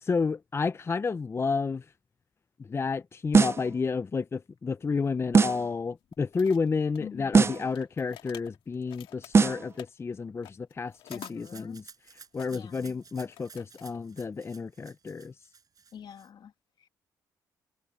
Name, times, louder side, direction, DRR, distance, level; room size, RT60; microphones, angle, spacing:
voice 1, 0.0-1.8 2.7-11.8 12.3-15.3, left 4 dB, 30° left, 0.5 m, -31 dB
sound 1, 3.3-3.7 5.3-5.7 7.3-7.7 9.3-9.7, right 4 dB, 30° right, 0.6 m, -21 dB
sound 2, 6.1-7.0 7.5-9.9 10.4-11.3 12.4-12.5 12.9-14.0, left 13 dB, 80° left, 2.1 m, -48 dB
voice 2, 7.0-7.6 11.1-11.8 12.5-13.0 15.9-16.5, left 8 dB, 60° left, 2.2 m, -45 dB
Rattle (instrument), 11.1-16.3, right 6 dB, 45° right, 6.9 m, -53 dB
supercardioid pair, 70°, 9 cm